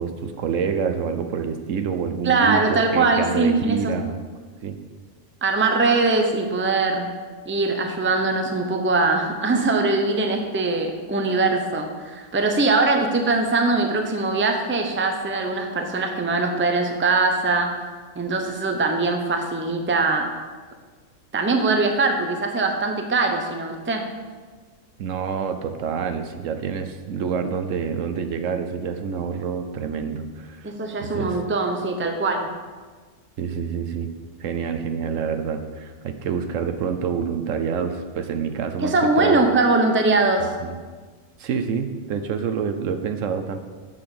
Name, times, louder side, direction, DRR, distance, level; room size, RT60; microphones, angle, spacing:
voice 1, 0.0-4.2 4.6-4.8 25.0-30.7 31.0-31.4 33.4-34.1 34.4-39.4 40.4-40.7 41.4-43.6, right 6 dB, 75° right, 8 dB, 1.1 m, -27 dB
voice 2, 2.2-3.9 5.4-17.7 18.2-20.3 21.3-24.1 30.6-32.5 38.8-40.5, right 3 dB, 10° right, 4 dB, 0.6 m, -22 dB
7.6 x 5.8 x 6.9 m, 1.4 s
omnidirectional pair, 1.4 m